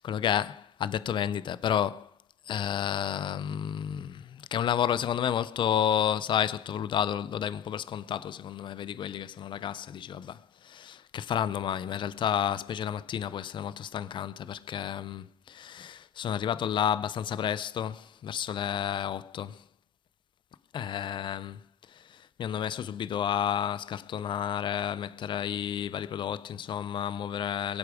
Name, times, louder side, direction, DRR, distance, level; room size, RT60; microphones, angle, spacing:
voice 1, 0.0-2.1 2.5-19.6 20.7-21.6 21.9-27.8, left 9 dB, 80° left, 0.5 m, -31 dB
23.0 x 8.4 x 4.9 m
cardioid pair, 80°, 8 cm